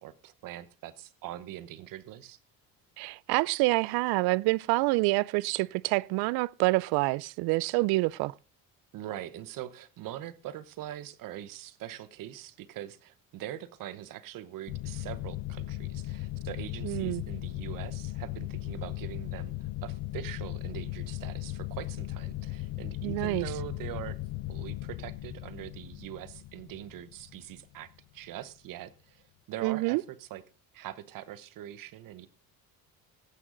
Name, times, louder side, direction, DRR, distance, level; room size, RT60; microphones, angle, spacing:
voice 1, 0.0-2.4 8.9-19.5 19.8-24.2 24.5-29.2 29.5-30.4 30.7-32.3, right 12 dB, 60° right, 1.0 m, -42 dB
voice 2, 3.0-8.3 16.8-17.2 23.0-23.5 29.6-30.0, right 23 dB, 80° right, 0.5 m, -27 dB
sound 1, 14.7-27.9, left 16 dB, 70° left, 0.7 m, -37 dB
15.0 x 9.5 x 3.9 m
cardioid pair, 130°, 37 cm